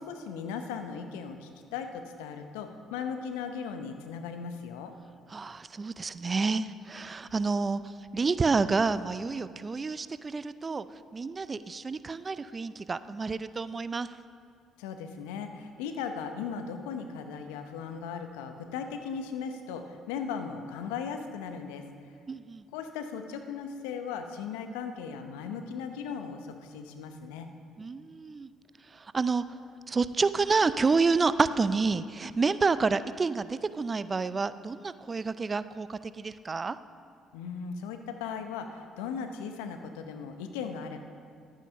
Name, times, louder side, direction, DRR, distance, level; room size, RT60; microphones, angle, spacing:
voice 1, 0.0-5.0 14.8-21.9 22.7-27.5 37.3-41.0, left 6 dB, 80° left, 7 dB, 0.7 m, -37 dB
voice 2, 5.3-7.8 8.1-10.8 11.1-14.1 22.3-22.6 27.8-28.5 29.1-29.4 29.9-36.8, right 4 dB, 35° right, 14 dB, 0.4 m, -29 dB
11.5 x 9.0 x 5.2 m, 2.2 s
hypercardioid pair, 50°, 0 cm